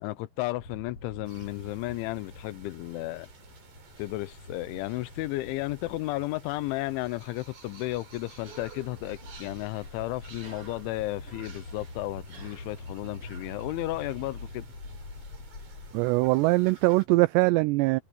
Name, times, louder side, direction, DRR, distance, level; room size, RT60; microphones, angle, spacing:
voice 1, 0.0-3.3 4.0-14.7, left 19 dB, 85° left, 3.1 m, -33 dB
sound 1, 0.6-15.9, left 3 dB, 35° left, 5.8 m, -45 dB
sound 2, 1.2-17.1, right 4 dB, 60° right, 8.7 m, -54 dB
Cough, 8.4-14.1, right 5 dB, 30° right, 5.1 m, -53 dB
voice 2, 15.9-18.0, right 22 dB, 90° right, 2.4 m, -22 dB
omnidirectional pair, 5.4 m